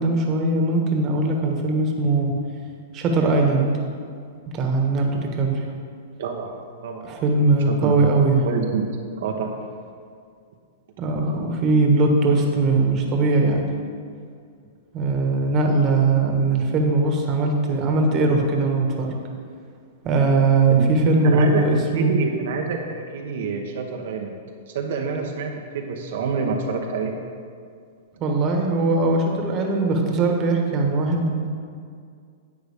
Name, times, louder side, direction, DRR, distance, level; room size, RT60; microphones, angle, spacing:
voice 1, 0.0-2.3 2.9-3.7 4.5-5.6 7.0-8.4 11.0-13.6 14.9-19.1 20.0-22.1 28.2-31.5, right 3 dB, 30° right, 1 dB, 1.3 m, -20 dB
voice 2, 6.2-6.6 6.8-7.4 7.7-8.1 8.4-8.9 9.2-9.7 20.7-20.9 21.2-21.7 21.9-24.3 24.7-27.1, right 5 dB, 70° right, 1 dB, 0.9 m, -27 dB
10.5 x 7.9 x 3.6 m, 2.2 s
hypercardioid pair, 140°, 0 cm